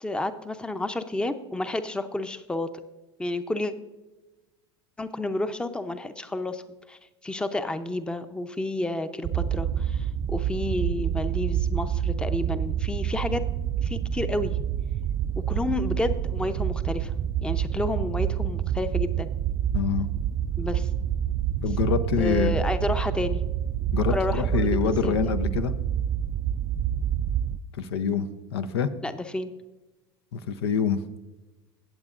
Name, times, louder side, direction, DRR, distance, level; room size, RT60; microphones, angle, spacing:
voice 1, 0.0-2.7 3.2-3.7 5.0-6.6 6.9-13.4 13.8-14.5 15.5-17.1 17.4-19.3 20.6-20.9 22.2-23.4 24.1-25.3 29.0-29.5, left 2 dB, 5° left, 10 dB, 0.6 m, -30 dB
sound 1, 9.2-27.6, right 10 dB, 35° right, 0.4 m, -27 dB
voice 2, 19.7-20.1 21.6-22.6 23.9-25.7 27.8-28.9 30.3-31.2, left 7 dB, 80° left, 11 dB, 0.6 m, -26 dB
17.5 x 7.4 x 2.5 m, 1.1 s
hypercardioid pair, 90°, 13 cm